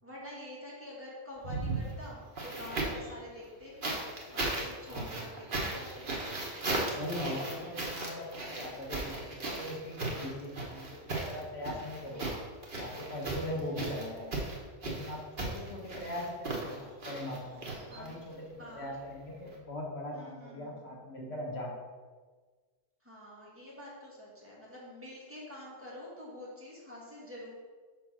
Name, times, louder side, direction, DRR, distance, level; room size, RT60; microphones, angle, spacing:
voice 1, 0.0-6.1 13.5-13.7 17.9-18.2 18.6-18.9 20.1-20.8 23.0-27.5, left 1 dB, 10° right, -7 dB, 1.9 m, -47 dB
sound 1, 1.4-3.1 3.8-18.3 19.5-19.6, right 2 dB, 50° right, 1.3 m, -37 dB
voice 2, 4.9-5.2 6.9-12.3 12.8-14.4 14.8-21.8, left 1 dB, 70° left, -2 dB, 1.5 m, -40 dB
5.2 x 4.5 x 6.0 m, 1.4 s
omnidirectional pair, 1.1 m